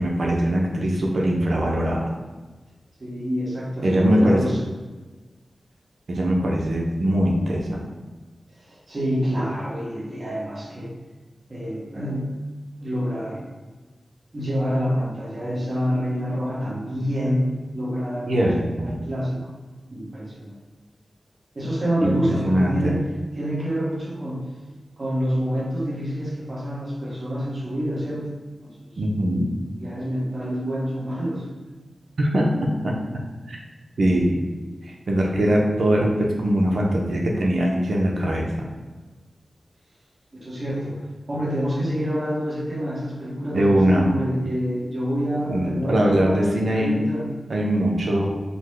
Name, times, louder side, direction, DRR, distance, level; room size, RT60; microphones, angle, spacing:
voice 1, 0.0-2.1 3.8-4.4 6.1-7.8 18.3-19.0 22.0-23.0 29.0-29.4 32.2-32.5 32.8-32.9 33.5-33.6 34.0-34.4 34.9-38.7 43.5-44.1 45.5-47.0 47.5-48.3, right 1 dB, 75° right, -1 dB, 0.6 m, -21 dB
voice 2, 3.0-4.6 8.6-10.9 11.5-12.3 12.8-13.5 14.3-18.5 18.7-19.5 19.9-20.5 21.5-23.0 23.3-24.5 25.0-28.3 28.6-29.0 29.8-31.8 40.4-41.0 41.3-47.3, equal, 50° right, -6 dB, 1.2 m, -27 dB
3.9 x 2.1 x 3.2 m, 1.3 s
wide cardioid pair, 75°, 0 cm